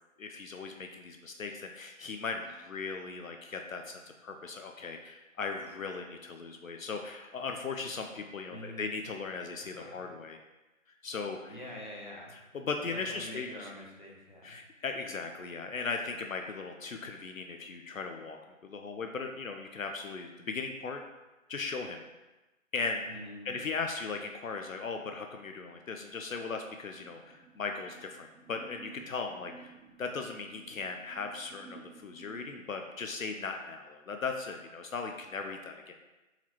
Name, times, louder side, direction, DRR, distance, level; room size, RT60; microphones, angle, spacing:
voice 1, 0.2-10.4 11.0-11.6 12.3-13.7 14.4-18.4 18.6-21.0 21.5-22.0 22.7-23.1 23.4-35.9, left 4 dB, 75° left, 4 dB, 0.6 m, -38 dB
voice 2, 8.5-8.9 9.6-10.1 11.5-12.4 12.9-14.6 23.0-23.5, equal, 35° left, -3 dB, 0.8 m, -45 dB
sound 1, 27.0-32.6, right 4 dB, 85° right, 0.8 m, -54 dB
4.5 x 4.0 x 2.9 m, 1.1 s
figure-of-eight pair, 180°, 41 cm